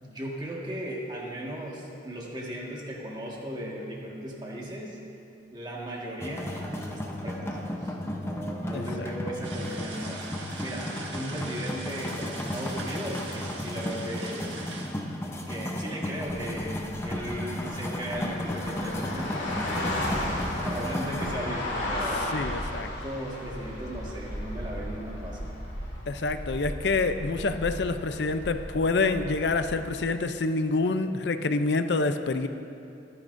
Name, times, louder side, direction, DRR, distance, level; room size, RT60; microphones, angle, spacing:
voice 1, 0.0-5.0 5.5-10.2 10.6-14.5 15.2-20.2 20.6-22.3 22.8-25.5, right 1 dB, 25° right, -3 dB, 1.7 m, -37 dB
sound 1, 6.2-21.3, left 1 dB, 15° left, 0.7 m, -34 dB
voice 2, 8.7-9.1 22.3-22.9 26.1-32.5, left 3 dB, 65° left, 9 dB, 0.5 m, -27 dB
sound 2, 9.4-14.9, right 3 dB, 85° right, 1.6 m, -41 dB
sound 3, 16.3-29.9, left 1 dB, 90° left, 2.4 m, -35 dB
22.0 x 9.7 x 2.6 m, 2.7 s
head